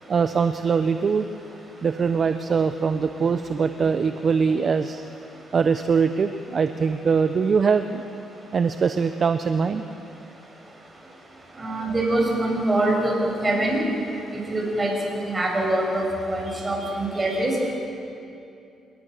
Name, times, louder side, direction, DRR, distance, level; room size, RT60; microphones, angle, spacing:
voice 1, 0.1-1.3 1.8-5.0 5.5-8.0 8.5-9.8 11.7-11.8 16.5-17.4, right 5 dB, 45° right, 9 dB, 0.9 m, -23 dB
voice 2, 11.6-13.1 13.4-13.8 14.5-14.9 15.2-17.5, right 1 dB, 25° right, -1 dB, 7.7 m, -24 dB
28.5 x 19.5 x 6.8 m, 2.6 s
cardioid pair, 90°, 0 cm